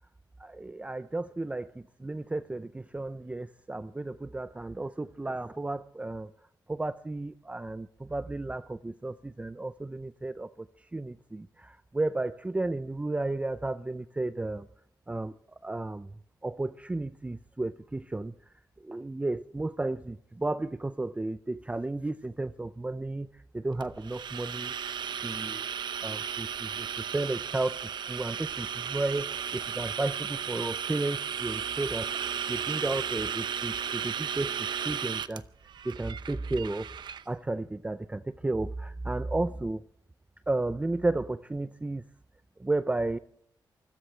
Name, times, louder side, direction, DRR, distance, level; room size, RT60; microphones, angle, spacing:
voice 1, 0.4-6.3 6.7-10.7 10.9-14.7 15.1-15.3 15.6-16.1 16.4-18.3 18.8-24.7 25.2-25.6 26.0-26.9 27.1-35.4 35.8-36.9 37.3-39.8 40.5-42.0 42.6-43.2, right 2 dB, 15° right, 0.5 m, -33 dB
sound 1, 23.8-37.2, right 8 dB, 75° right, 0.8 m, -35 dB
24.5 x 16.0 x 3.3 m
cardioid pair, 85°, 8 cm